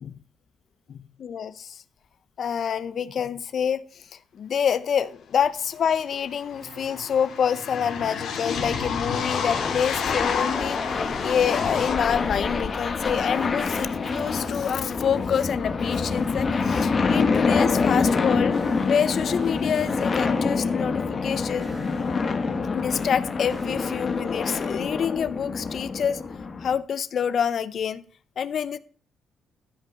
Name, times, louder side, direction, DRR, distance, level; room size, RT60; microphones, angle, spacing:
voice 1, 0.9-1.8 2.4-4.0 4.3-21.7 22.7-26.2 26.6-28.0 28.4-28.8, left 7 dB, 55° left, 0.6 m, -27 dB
sound 1, 5.4-5.5 5.7-11.9, left 6 dB, 75° left, 2.2 m, -30 dB
sound 2, 6.6-7.8 8.4-9.6 10.2-13.3 14.0-15.6 15.9-21.4 21.6-24.9, right 4 dB, 45° right, 2.6 m, -48 dB
sound 3, 8.5-26.8, left 4 dB, 40° left, 1.3 m, -26 dB
13.5 x 5.5 x 5.3 m
cardioid pair, 90°, 0 cm